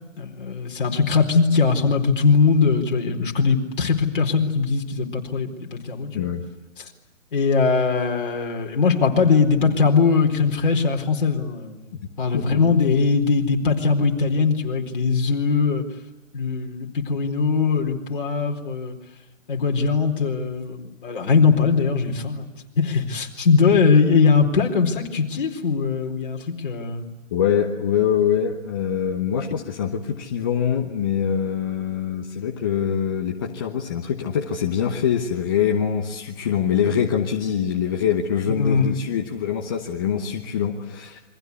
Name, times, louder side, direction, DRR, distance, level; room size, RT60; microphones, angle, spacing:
voice 1, 0.2-6.3 6.8-6.9 7.3-11.9 12.2-15.8 16.3-19.0 19.5-22.5 22.8-27.1 38.5-39.0, left 5 dB, 40° left, 2 dB, 4.2 m, -20 dB
voice 2, 27.3-41.2, left 8 dB, 15° left, 1 dB, 1.0 m, -24 dB
29.0 x 24.0 x 8.4 m, 1.1 s
hypercardioid pair, 165°, 38 cm